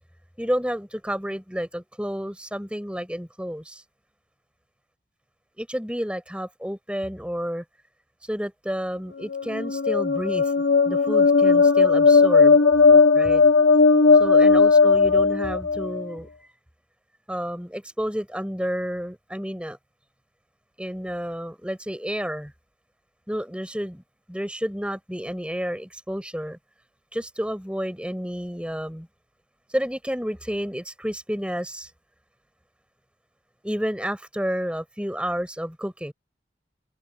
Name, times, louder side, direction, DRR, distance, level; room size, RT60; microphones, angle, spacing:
voice 1, 0.4-3.8 5.6-7.6 8.2-10.5 10.9-12.6 13.1-13.4 14.1-16.5 17.3-19.8 20.8-22.5 23.3-24.0 24.3-26.6 27.1-29.1 29.7-31.9 33.6-36.1, equal, 5° right, 6.5 m, -30 dB
sound 1, 9.2-16.0, left 4 dB, 85° left, 2.5 m, -17 dB
head